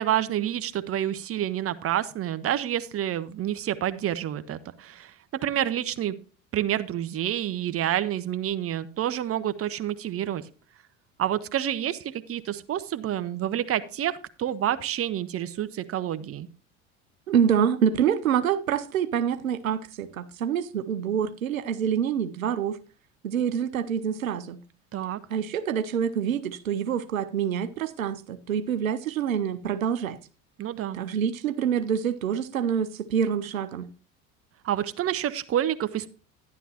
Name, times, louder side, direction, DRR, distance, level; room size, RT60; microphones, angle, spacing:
voice 1, 0.0-5.1 5.4-6.2 6.5-10.4 11.2-16.5 24.9-25.2 30.6-31.0 34.6-36.1, right 11 dB, 35° right, 0.9 m, -28 dB
voice 2, 17.3-22.8 23.2-24.6 25.3-30.2 30.9-33.9, right 8 dB, 90° right, 0.6 m, -26 dB
11.5 x 10.5 x 2.9 m
hypercardioid pair, 70°, 39 cm